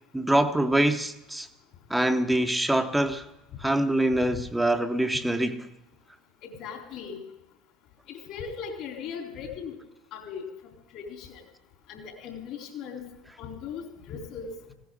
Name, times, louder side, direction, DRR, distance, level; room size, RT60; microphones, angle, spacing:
voice 1, 0.1-1.5 1.9-3.2 3.6-5.6, right 1 dB, 5° right, 1.0 m, -24 dB
voice 2, 6.4-7.2 8.1-9.7 10.1-10.5 10.9-11.4 11.9-13.0 13.4-14.5, left 6 dB, 55° left, 3.9 m, -38 dB
19.5 x 16.0 x 3.9 m
figure-of-eight pair, 70°, 0 cm